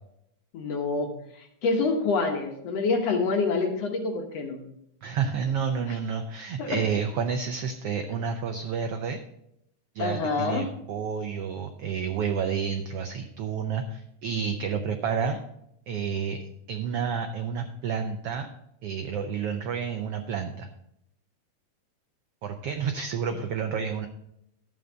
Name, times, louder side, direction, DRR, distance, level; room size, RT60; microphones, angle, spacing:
voice 1, 0.5-1.1 1.6-4.6 6.6-6.8 10.0-10.7, left 4 dB, 60° left, 3 dB, 2.1 m, -26 dB
voice 2, 5.0-9.2 9.9-15.4 15.9-16.4 16.7-18.5 18.8-20.7 22.4-24.1, right 6 dB, 80° right, 6 dB, 1.3 m, -30 dB
12.0 x 8.0 x 3.9 m, 0.77 s
omnidirectional pair, 3.6 m